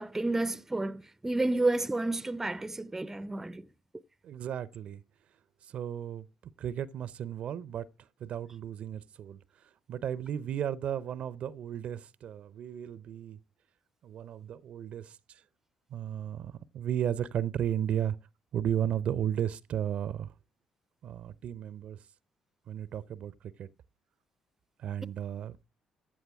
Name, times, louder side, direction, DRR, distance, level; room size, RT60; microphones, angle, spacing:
voice 1, 0.0-3.6, right 2 dB, 15° right, 0.6 m, -30 dB
voice 2, 4.2-5.0 5.7-6.3 6.6-7.9 8.2-9.4 9.9-13.4 14.0-15.2 15.9-18.2 18.5-20.3 21.0-22.0 22.7-23.7 24.8-25.6, right 10 dB, 60° right, 0.6 m, -34 dB
15.0 x 9.1 x 3.5 m
hypercardioid pair, 45°, 2 cm